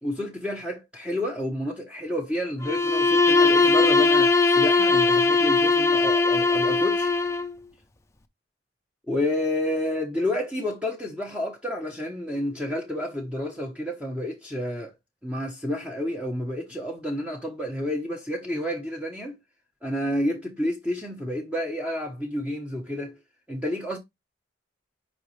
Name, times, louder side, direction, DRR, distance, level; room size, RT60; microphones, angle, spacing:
voice 1, 0.0-7.1 9.1-14.9 15.2-19.4 19.8-23.2 23.5-24.0, left 1 dB, 5° right, 1.0 m, -30 dB
Bowed string instrument, 2.6-7.5, left 3 dB, 15° left, 0.6 m, -20 dB
10.5 x 4.1 x 3.2 m
head